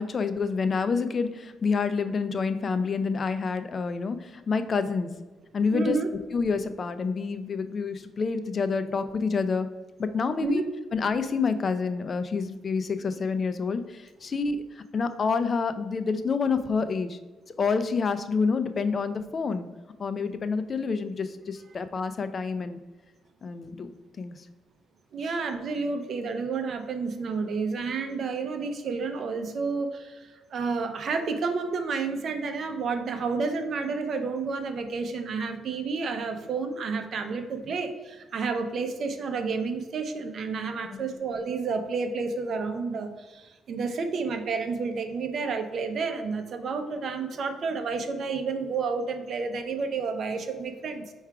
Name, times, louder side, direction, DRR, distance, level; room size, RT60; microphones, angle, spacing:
voice 1, 0.0-5.1 5.5-6.0 6.3-9.7 10.0-10.6 10.9-17.2 17.6-19.7 20.0-22.8 23.4-23.9 24.2-24.4 25.2-25.3 40.9-41.1, left 5 dB, 40° left, 11 dB, 0.4 m, -28 dB
voice 2, 5.7-6.1 10.4-10.6 25.1-51.1, right 4 dB, 60° right, 6 dB, 0.5 m, -30 dB
4.5 x 2.4 x 4.6 m, 1.2 s
cardioid pair, 90°, 0 cm